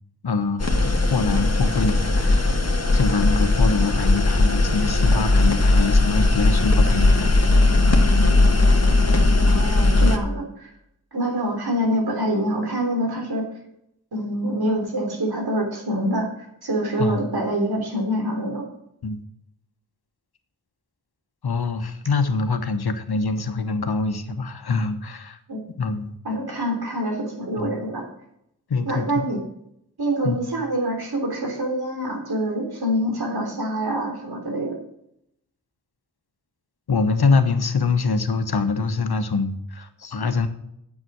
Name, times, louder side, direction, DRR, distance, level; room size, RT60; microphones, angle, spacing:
voice 1, 0.2-2.6 2.9-7.7 17.0-17.2 19.0-19.2 21.4-25.4 25.8-26.2 27.6-27.8 28.7-29.3 30.2-30.4 36.9-40.5, left 4 dB, 85° left, 8 dB, 1.2 m, -24 dB
sound 1, 0.6-10.2, left 2 dB, 40° left, 1.6 m, -18 dB
voice 2, 9.4-10.7 11.1-13.5 14.1-16.3 16.6-18.6 25.5-25.6 26.2-28.0 28.8-29.4 30.0-34.8, right 1 dB, 80° right, 2 dB, 3.3 m, -25 dB
9.8 x 7.8 x 6.1 m, 0.77 s
wide cardioid pair, 50°, 37 cm